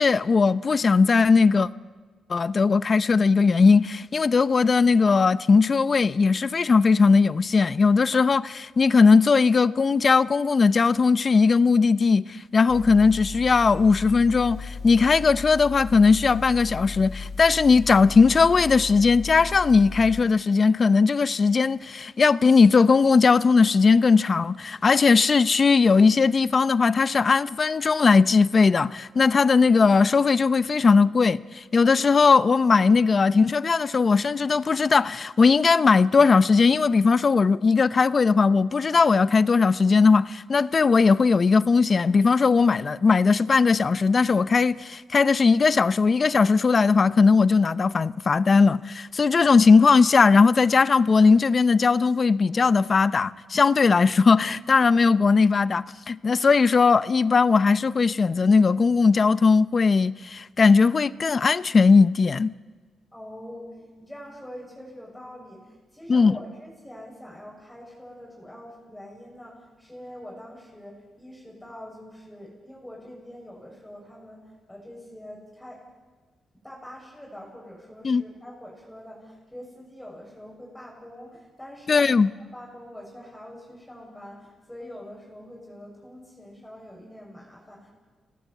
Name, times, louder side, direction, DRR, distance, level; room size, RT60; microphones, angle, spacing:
voice 1, 0.0-1.7 2.3-62.5 66.1-66.4 78.0-78.2 81.9-82.3, left 4 dB, 45° left, 0.7 m, -19 dB
sound 1, 12.7-20.2, left 4 dB, 65° left, 1.2 m, -36 dB
voice 2, 63.1-75.9 76.6-87.9, left 1 dB, 10° left, 7.1 m, -44 dB
27.5 x 18.0 x 8.3 m
cardioid pair, 75°, 0 cm